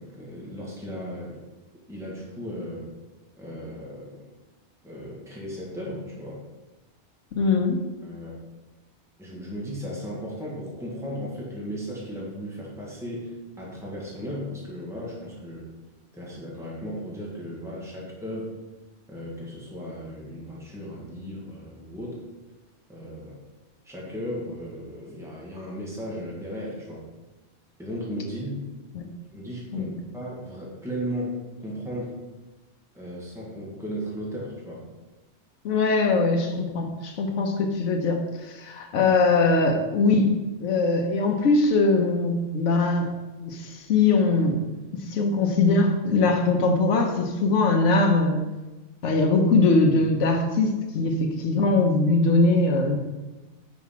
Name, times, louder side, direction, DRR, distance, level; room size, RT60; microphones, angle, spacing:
voice 1, 0.0-1.4 1.9-2.9 3.4-4.2 4.8-6.4 8.0-8.3 9.2-15.7 16.1-18.5 19.1-22.2 22.9-23.4 23.8-27.0 27.8-28.6 29.3-32.2 32.9-34.8, equal, ahead, -5 dB, 1.5 m, -36 dB
voice 2, 7.3-7.8 28.9-29.1 29.7-29.9 35.6-44.6 44.9-48.4 49.0-53.0, left 3 dB, 85° left, 2 dB, 1.1 m, -22 dB
5.1 x 4.7 x 5.7 m, 1.1 s
omnidirectional pair, 1.2 m